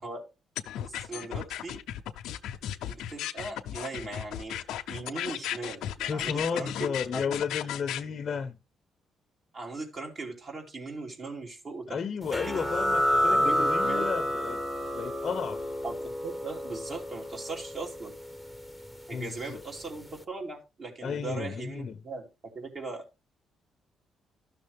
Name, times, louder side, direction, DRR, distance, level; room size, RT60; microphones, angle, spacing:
sound 1, 0.6-8.0, left 11 dB, 85° left, 0.6 m, -35 dB
voice 1, 0.8-1.8 2.9-4.6 4.9-7.3 9.5-12.0 12.5-12.6 13.3-14.1 15.8-18.1 19.1-23.0, right 3 dB, 45° right, 2.9 m, -39 dB
voice 2, 6.1-8.6 11.9-14.6 14.9-15.6 19.1-19.6 21.0-21.9, left 6 dB, 50° left, 0.7 m, -33 dB
sound 2, 12.3-19.6, equal, 5° right, 1.1 m, -30 dB
12.5 x 6.6 x 3.4 m
cardioid pair, 90°, 0 cm